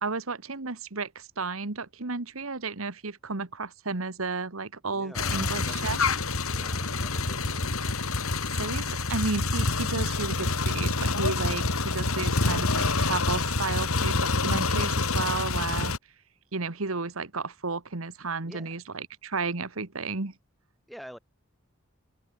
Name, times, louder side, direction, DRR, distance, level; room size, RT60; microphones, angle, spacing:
voice 1, 0.0-6.0 8.5-15.9 16.5-20.3, right 3 dB, 80° right, 1.6 m, -33 dB
voice 2, 4.9-7.7 18.4-18.7 20.9-21.2, equal, ahead, 5.6 m, -48 dB
sound 1, 5.1-16.0, left 3 dB, 90° left, 3.0 m, -27 dB
head